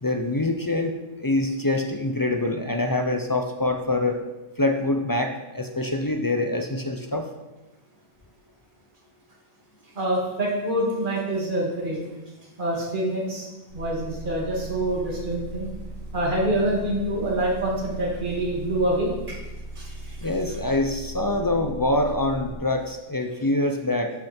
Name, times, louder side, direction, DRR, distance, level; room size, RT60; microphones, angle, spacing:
voice 1, 0.0-4.2 4.6-7.3 20.2-24.1, left 2 dB, 35° left, 4 dB, 0.3 m, -25 dB
voice 2, 10.0-12.0 12.6-13.5 13.7-15.7 16.1-19.4 19.8-20.2, right 1 dB, 35° right, -4 dB, 2.3 m, -26 dB
sound 1, 13.7-22.6, right 1 dB, 60° right, 2.8 m, -38 dB
11.5 x 6.1 x 4.4 m, 1.1 s
omnidirectional pair, 1.4 m